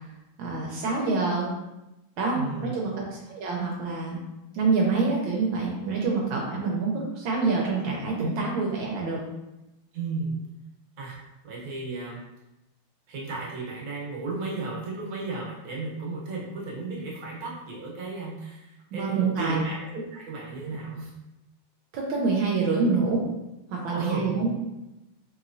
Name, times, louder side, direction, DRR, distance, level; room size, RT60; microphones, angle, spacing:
voice 1, 0.4-1.5 2.2-4.2 4.5-9.2 18.9-19.6 21.9-23.2 23.7-24.5, right 4 dB, 80° right, -2 dB, 1.4 m, -26 dB
voice 2, 2.3-2.8 9.9-10.3 11.0-12.2 13.1-21.2 23.8-24.6, right 3 dB, 55° right, -4 dB, 1.4 m, -34 dB
4.4 x 2.9 x 2.6 m, 0.96 s
omnidirectional pair, 2.2 m